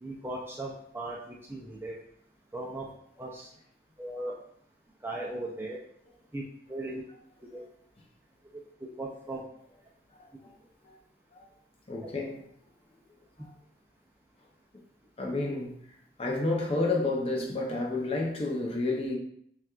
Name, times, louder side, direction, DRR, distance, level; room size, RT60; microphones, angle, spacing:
voice 1, 0.0-2.0 2.5-2.9 3.2-3.5 4.0-4.3 5.0-5.8 6.3-6.4 6.7-7.0 7.5-7.6 8.5-8.6 9.0-9.4 12.0-12.1, right 2 dB, 10° right, -2 dB, 0.4 m, -37 dB
voice 2, 11.9-12.4 15.2-15.8 16.2-19.2, left 2 dB, 30° left, 0 dB, 0.6 m, -30 dB
5.7 x 2.3 x 2.4 m, 0.67 s
head